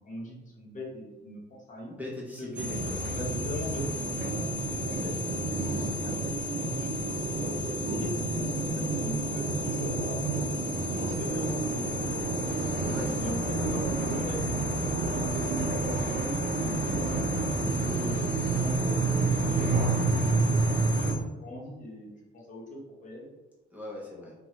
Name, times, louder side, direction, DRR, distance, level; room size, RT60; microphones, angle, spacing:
voice 1, 0.0-1.9 2.4-2.5 3.1-7.2 7.9-10.6 10.9-11.9 12.8-14.7 15.0-17.2 17.5-23.3, left 1 dB, 40° left, -4 dB, 0.9 m, -41 dB
voice 2, 1.8-3.2 12.9-13.7 23.7-24.3, left 1 dB, 10° right, -5 dB, 0.6 m, -41 dB
sound 1, 2.6-21.1, right 2 dB, 60° right, 0.5 m, -29 dB
2.7 x 2.2 x 3.0 m, 1.1 s
cardioid pair, 90°, 20 cm